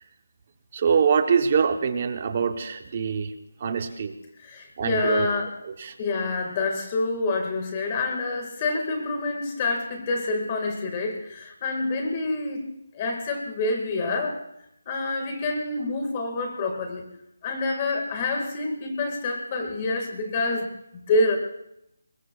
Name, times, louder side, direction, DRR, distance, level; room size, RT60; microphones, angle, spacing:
voice 1, 0.7-3.3 3.6-4.1 4.8-5.3 5.6-5.9, right 6 dB, 25° right, 8 dB, 1.0 m, -24 dB
voice 2, 4.4-5.5 6.0-12.7 12.9-14.4 14.9-17.1 17.4-21.4, left 3 dB, 15° left, 3 dB, 1.9 m, -27 dB
25.5 x 21.5 x 2.4 m, 0.80 s
hypercardioid pair, 180°, 0 cm